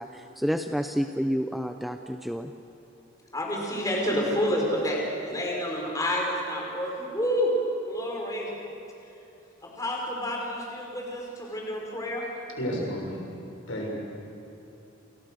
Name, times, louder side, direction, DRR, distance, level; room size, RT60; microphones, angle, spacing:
voice 1, 0.0-2.5, equal, ahead, 6 dB, 0.7 m, -29 dB
voice 2, 3.3-7.5 7.9-8.5 9.6-12.3, equal, 15° left, -1 dB, 5.3 m, -29 dB
voice 3, 12.5-13.3 13.7-14.0, equal, 70° left, -1 dB, 6.9 m, -31 dB
29.5 x 29.0 x 6.8 m, 2.8 s
head